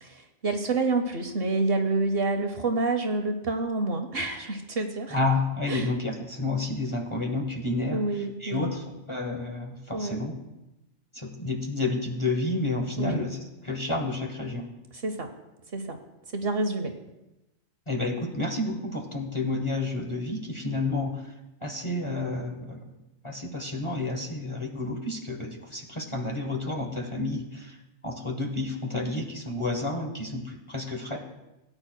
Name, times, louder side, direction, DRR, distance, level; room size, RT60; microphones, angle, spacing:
voice 1, 0.0-5.2 5.7-5.9 7.9-8.7 9.9-10.2 13.0-13.3 14.9-15.3 15.7-16.0 16.3-16.9, right 3 dB, 55° right, 6 dB, 0.9 m, -28 dB
voice 2, 5.1-10.3 11.1-14.7 17.9-21.3 21.6-23.0 23.2-27.8 28.0-31.2, left 2 dB, 25° left, 1 dB, 0.9 m, -30 dB
17.5 x 8.7 x 2.2 m, 0.97 s
omnidirectional pair, 1.4 m